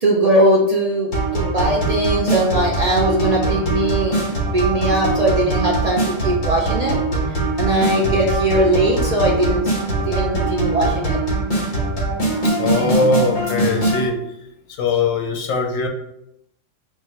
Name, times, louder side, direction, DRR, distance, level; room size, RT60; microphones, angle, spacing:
voice 1, 0.0-7.0 7.6-9.7 10.1-11.2, right 1 dB, 50° right, -3 dB, 0.5 m, -19 dB
sound 1, 1.1-14.0, right 2 dB, 40° left, 1.3 m, -22 dB
voice 2, 12.4-14.4 14.7-15.9, left 3 dB, 90° left, 4 dB, 1.1 m, -21 dB
4.1 x 2.4 x 4.2 m, 0.81 s
omnidirectional pair, 1.3 m